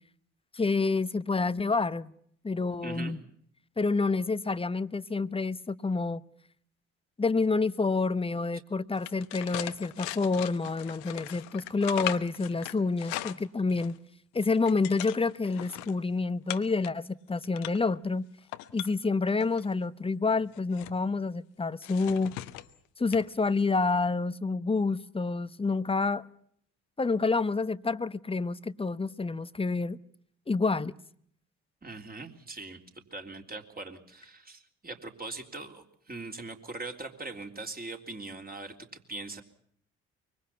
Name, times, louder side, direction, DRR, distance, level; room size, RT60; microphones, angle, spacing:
voice 1, 0.5-2.1 2.4-3.2 3.8-6.2 7.2-14.0 14.3-18.3 18.7-22.4 23.0-26.3 27.0-30.0 30.5-30.9, left 3 dB, 15° left, 1.0 m, -28 dB
voice 2, 2.8-3.2 31.8-39.4, right 3 dB, 25° right, 3.6 m, -41 dB
sound 1, 8.9-14.0 14.3-15.9 16.5-16.9 17.3-17.9 18.4-19.7 20.3-21.0 21.8-22.7 23.1-23.3 23.6-23.8, left 17 dB, 70° left, 1.1 m, -39 dB
24.5 x 24.0 x 5.8 m
figure-of-eight pair, 45°, 37 cm